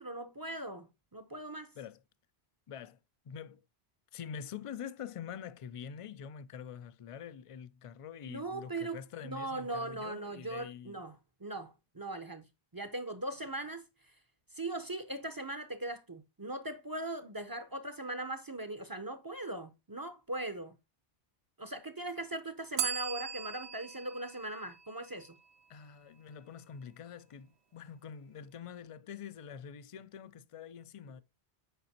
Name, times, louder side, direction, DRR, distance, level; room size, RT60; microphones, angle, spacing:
voice 1, 0.0-1.7 8.3-9.0 9.2-12.5 12.7-13.8 14.5-20.8 21.6-25.4, right 2 dB, 25° right, 0.5 m, -40 dB
voice 2, 2.7-3.0 3.2-3.6 4.1-11.0 25.7-31.2, left 8 dB, 60° left, 0.3 m, -45 dB
Bell, 22.8-25.6, right 8 dB, 90° right, 1.0 m, -39 dB
8.1 x 5.1 x 2.8 m
omnidirectional pair, 1.1 m